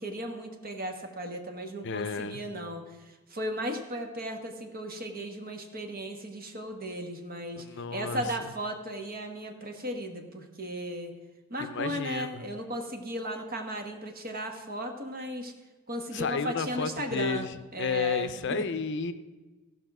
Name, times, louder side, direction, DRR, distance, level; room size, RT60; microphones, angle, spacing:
voice 1, 0.0-11.2 11.5-15.5 15.9-18.6, equal, 45° right, 4 dB, 1.3 m, -36 dB
voice 2, 1.8-2.4 7.6-8.2 11.6-12.4 16.1-17.5 17.8-19.1, left 5 dB, 55° left, 12 dB, 0.5 m, -32 dB
15.5 x 5.5 x 6.0 m, 1.2 s
head